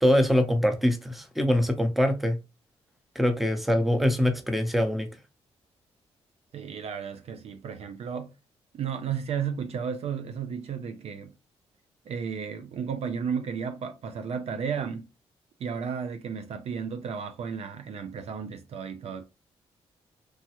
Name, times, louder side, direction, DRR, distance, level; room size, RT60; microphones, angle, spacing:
voice 1, 0.0-2.4 3.1-5.1, equal, ahead, 0.7 m, -23 dB
voice 2, 6.5-8.3 8.7-11.3 12.1-15.1 15.6-19.2, right 7 dB, 60° right, 0.4 m, -33 dB
3.2 x 2.2 x 2.9 m
supercardioid pair, 65°, 12 cm